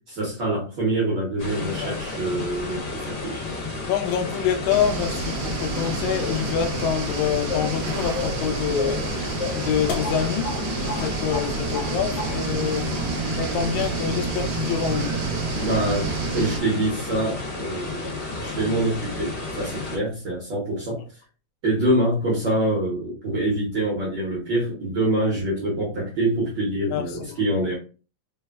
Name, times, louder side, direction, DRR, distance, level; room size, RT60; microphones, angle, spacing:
voice 1, 0.1-3.4 15.6-21.0 21.6-27.8, right 1 dB, 65° right, 1.1 m, -25 dB
sound 1, 1.4-20.0, left 3 dB, 55° left, 1.2 m, -32 dB
voice 2, 3.9-9.1 9.5-12.9 13.3-15.2 26.9-27.4, left 8 dB, 85° left, 2.0 m, -26 dB
sound 2, 4.7-16.6, right 5 dB, 90° right, 1.3 m, -30 dB
sound 3, 7.5-7.8 8.1-8.5 8.8-9.1 9.4-10.6 10.9-11.1 11.3-11.9 12.2-12.3, left 3 dB, 70° left, 2.3 m, -31 dB
4.7 x 2.1 x 2.3 m
omnidirectional pair, 3.3 m